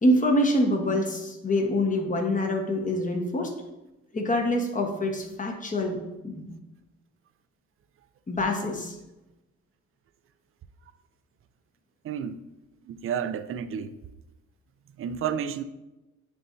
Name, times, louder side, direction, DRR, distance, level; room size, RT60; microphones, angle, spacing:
voice 1, 0.0-3.5 4.1-6.0 6.2-6.5 8.3-9.0, left 1 dB, 25° left, 1.2 m, -25 dB
voice 2, 12.0-12.4 12.9-13.9 15.0-15.6, right 8 dB, 45° right, 0.5 m, -31 dB
9.6 x 4.1 x 2.7 m
cardioid pair, 90°, 30 cm